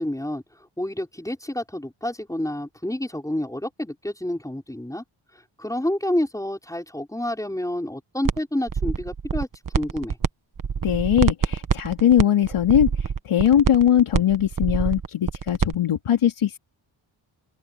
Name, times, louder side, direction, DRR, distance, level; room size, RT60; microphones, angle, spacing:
voice 1, 0.0-5.0 5.6-9.5 9.7-10.2, left 1 dB, 5° left, 4.9 m, -29 dB
sound 1, 8.3-8.4 8.7-10.3 10.6-15.8, right 6 dB, 40° right, 1.2 m, -25 dB
voice 2, 10.8-12.9 13.2-16.6, left 10 dB, 85° left, 2.4 m, -20 dB
open air
wide cardioid pair, 100°, 49 cm